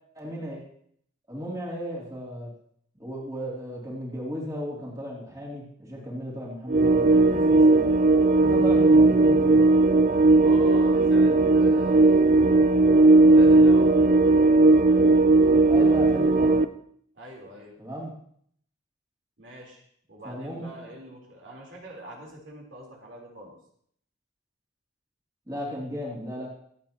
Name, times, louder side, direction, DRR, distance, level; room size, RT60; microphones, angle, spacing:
voice 1, 0.1-0.6 1.3-2.5 3.0-7.8 8.4-9.7 15.7-16.6 17.8-18.1 20.2-20.9 25.5-26.5, equal, 20° right, -4 dB, 2.9 m, -35 dB
sound 1, 6.7-16.7, right 2 dB, 45° right, 0.5 m, -17 dB
voice 2, 10.4-12.3 13.4-14.0 17.1-17.7 19.4-19.8 20.1-23.5, right 1 dB, 70° right, -2 dB, 3.7 m, -43 dB
25.0 x 8.5 x 2.9 m, 0.66 s
head